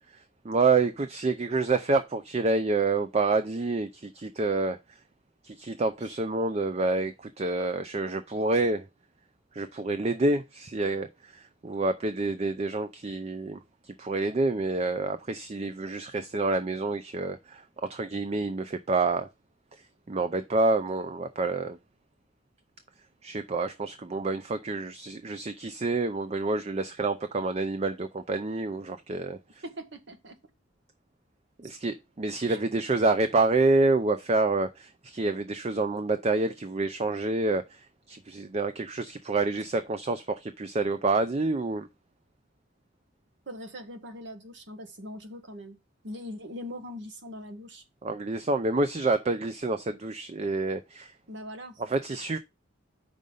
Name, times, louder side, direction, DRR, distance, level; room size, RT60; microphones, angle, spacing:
voice 1, 0.1-4.8 5.4-8.8 9.5-19.3 20.1-21.8 23.2-29.6 31.6-41.9 48.0-51.1 51.8-52.4, right 3 dB, 35° right, 0.5 m, -28 dB
voice 2, 29.6-30.4 32.5-32.6 43.5-45.8 46.0-47.8 51.3-51.8, equal, 65° right, 1.5 m, -41 dB
6.3 x 5.3 x 5.4 m
head